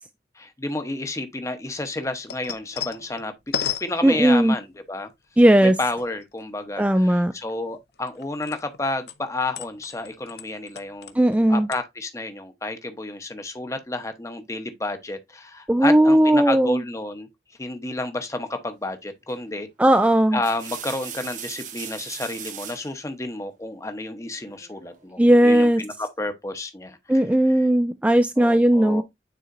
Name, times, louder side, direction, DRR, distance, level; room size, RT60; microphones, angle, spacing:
voice 1, 0.4-3.3 3.8-5.1 5.6-11.2 11.5-17.3 17.6-19.7 20.3-27.0 28.4-29.0, left 2 dB, 15° left, 0.8 m, -30 dB
sound 1, 1.7-4.7 5.4-6.4 6.8-8.8 9.1-11.4 11.7-11.8, left 9 dB, 60° left, 0.7 m, -34 dB
voice 2, 4.0-4.6 5.4-5.8 6.8-7.3 11.1-11.7 15.7-16.8 19.8-20.4 25.2-25.8 27.1-29.0, right 1 dB, 5° right, 0.3 m, -17 dB
sound 2, 19.3-19.6 20.2-22.9 24.4-25.0, right 8 dB, 45° right, 1.1 m, -38 dB
9.3 x 4.3 x 2.5 m
head